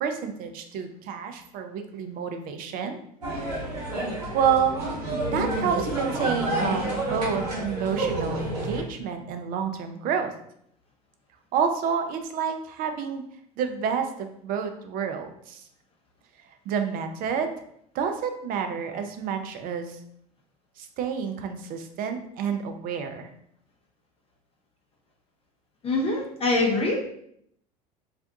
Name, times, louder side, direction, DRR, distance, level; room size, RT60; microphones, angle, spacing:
voice 1, 0.0-3.0 4.3-4.8 5.3-10.3 11.5-13.2 13.6-15.7 16.4-17.6 17.9-20.0 20.8-23.3, right 7 dB, 45° right, 6 dB, 0.4 m, -29 dB
sound 1, 3.2-8.8, right 1 dB, 85° right, 0.9 m, -29 dB
voice 2, 25.8-27.0, left 2 dB, 30° left, 0 dB, 0.6 m, -24 dB
2.4 x 2.2 x 2.6 m, 0.71 s
hypercardioid pair, 75°, 20 cm